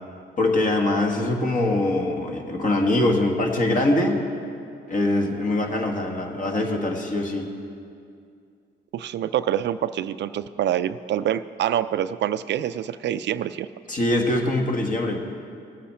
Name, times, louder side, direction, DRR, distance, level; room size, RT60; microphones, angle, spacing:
voice 1, 0.4-4.2 4.9-7.5 13.9-15.2, left 1 dB, 40° left, 2 dB, 1.7 m, -23 dB
voice 2, 8.9-13.7, right 11 dB, 65° right, 13 dB, 0.4 m, -26 dB
18.5 x 8.3 x 4.3 m, 2.4 s
cardioid pair, 90°, 20 cm